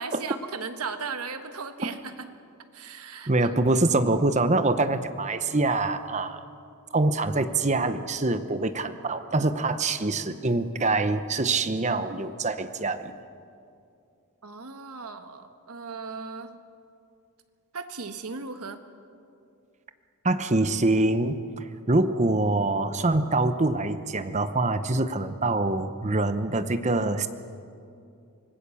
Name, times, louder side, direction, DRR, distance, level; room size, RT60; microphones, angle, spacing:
voice 1, 0.0-2.3 2.7-3.5 14.4-16.6 17.7-18.8, right 4 dB, 85° right, 8 dB, 1.4 m, -37 dB
voice 2, 3.3-6.4 6.9-13.1 20.2-21.4 21.9-27.3, right 2 dB, 30° right, 11 dB, 0.9 m, -25 dB
25.5 x 19.0 x 7.1 m, 2.5 s
head